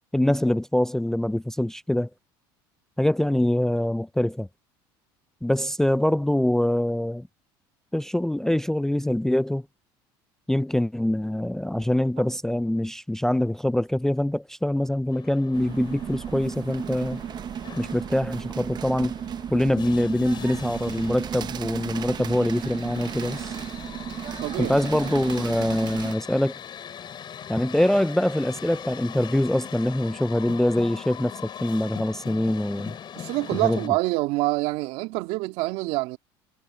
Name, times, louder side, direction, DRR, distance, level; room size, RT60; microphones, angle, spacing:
voice 1, 0.1-2.1 3.0-4.5 5.4-7.3 7.9-9.6 10.5-17.2 17.8-19.1 19.5-23.5 24.6-26.6 27.5-33.0 33.5-33.9, left 1 dB, 5° left, 0.4 m, -24 dB
sound 1, 15.1-33.9, left 9 dB, 40° left, 5.0 m, -42 dB
sound 2, 15.5-26.1, right 9 dB, 40° right, 0.7 m, -34 dB
voice 2, 24.4-24.8 33.1-36.2, right 20 dB, 70° right, 2.2 m, -26 dB
supercardioid pair, 95°, 11 cm